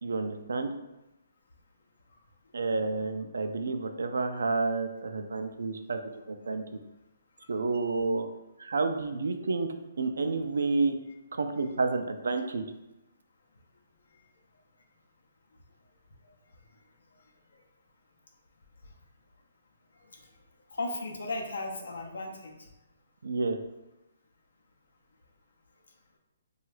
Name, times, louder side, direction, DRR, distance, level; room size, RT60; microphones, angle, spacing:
voice 1, 0.0-0.7 2.5-6.0 6.3-6.6 7.5-8.3 8.6-9.7 10.0-11.0 11.3-12.6 23.2-23.6, right 3 dB, 90° right, 6 dB, 0.3 m, -30 dB
voice 2, 20.7-22.5, left 2 dB, 85° left, 1 dB, 0.5 m, -35 dB
3.0 x 2.3 x 3.1 m, 0.95 s
hypercardioid pair, 165°, 0 cm